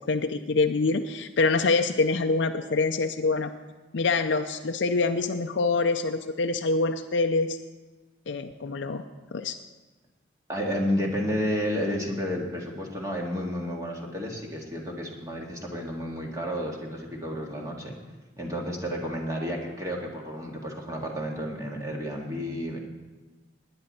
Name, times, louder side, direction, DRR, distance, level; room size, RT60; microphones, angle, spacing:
voice 1, 0.1-3.5 3.9-7.6 8.3-9.0 9.3-9.6, left 3 dB, 75° left, 6 dB, 0.5 m, -25 dB
voice 2, 10.5-17.9 18.4-22.8, equal, 20° right, -1 dB, 1.9 m, -31 dB
19.5 x 9.9 x 4.3 m, 1.3 s
head